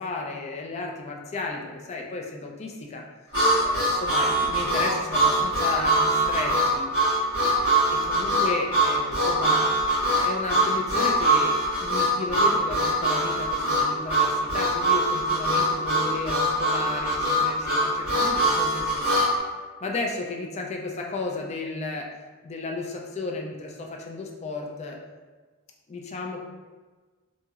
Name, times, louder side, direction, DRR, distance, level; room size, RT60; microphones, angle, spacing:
voice 1, 0.0-3.0 3.6-6.9 7.4-9.7 10.1-11.5 11.8-19.2 19.8-22.1 22.4-25.0 25.9-26.4, left 3 dB, 30° left, 1 dB, 0.3 m, -33 dB
Harmonica, 3.3-19.3, right 1 dB, 80° left, 1.3 m, -23 dB
2.9 x 2.7 x 2.4 m, 1.3 s
head